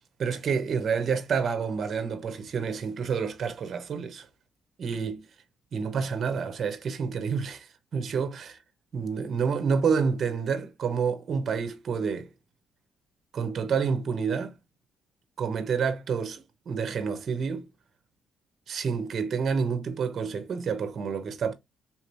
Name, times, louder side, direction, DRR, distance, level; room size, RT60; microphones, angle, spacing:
voice 1, 0.2-4.3 4.8-5.2 5.7-8.6 8.9-12.3 13.3-14.5 15.4-17.7 18.7-21.5, right 6 dB, 55° right, 0.9 m, -29 dB
3.8 x 2.9 x 2.6 m
cardioid pair, 90°, 0 cm